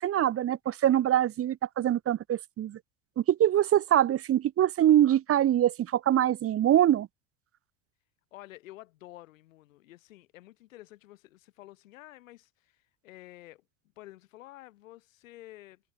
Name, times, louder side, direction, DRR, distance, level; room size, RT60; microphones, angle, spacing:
voice 1, 0.0-2.8 3.2-7.1, right 11 dB, 35° right, 1.1 m, -24 dB
voice 2, 8.3-13.6 14.0-15.8, left 16 dB, 80° left, 6.8 m, -50 dB
hypercardioid pair, 85°, 39 cm